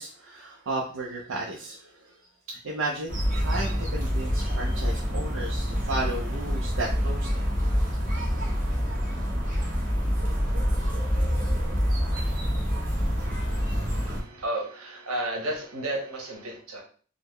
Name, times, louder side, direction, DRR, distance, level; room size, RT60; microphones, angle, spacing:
voice 1, 0.0-2.2 2.5-7.4, right 2 dB, 70° right, -2 dB, 0.5 m, -34 dB
sound 1, 3.1-14.2, equal, 40° right, 0.9 m, -26 dB
voice 2, 14.1-16.8, right 1 dB, 90° right, 0 dB, 1.0 m, -32 dB
3.7 x 2.0 x 3.1 m, 0.43 s
head